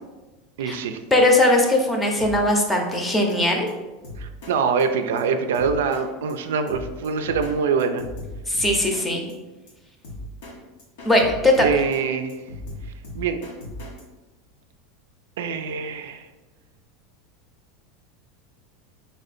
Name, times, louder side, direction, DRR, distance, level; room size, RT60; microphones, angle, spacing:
voice 1, 0.6-1.0 4.2-8.1 11.6-12.4 13.1-13.4 15.4-16.3, right 5 dB, 90° right, 7 dB, 0.3 m, -24 dB
voice 2, 1.1-3.7 8.5-9.2 11.0-11.7, left 1 dB, 15° left, 2 dB, 0.7 m, -19 dB
Drum kit, 2.2-2.6 2.9-3.0 3.3-3.4 3.7-3.8 4.0-4.5 4.8-4.9 5.2-5.3 5.5-6.0 6.3-6.4 6.7-7.5 7.8-9.0 9.3-9.4 9.7-9.8 10.0-10.5 10.8-12.0 12.3-14.0, left 2 dB, 80° left, 1.1 m, -37 dB
3.4 x 2.6 x 4.1 m, 1.1 s
supercardioid pair, 125°, 0 cm